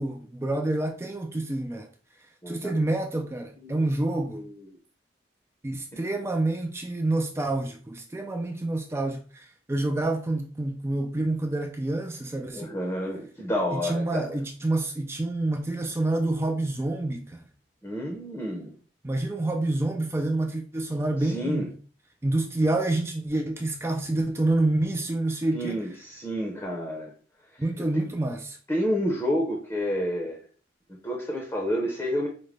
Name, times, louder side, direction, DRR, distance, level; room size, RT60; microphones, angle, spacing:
voice 1, 0.0-1.9 2.5-4.4 5.6-9.2 9.7-12.7 13.7-17.4 19.0-21.7 22.2-25.8 27.6-28.6, right 2 dB, 15° right, 0.3 m, -27 dB
voice 2, 2.4-2.8 3.6-3.8 4.3-4.7 5.9-6.0 12.5-14.4 17.8-18.8 21.2-21.7 25.5-27.1 27.5-27.6 27.9-28.0 28.7-30.4 31.0-32.3, equal, 15° left, 0.7 m, -29 dB
5.1 x 2.1 x 3.2 m
head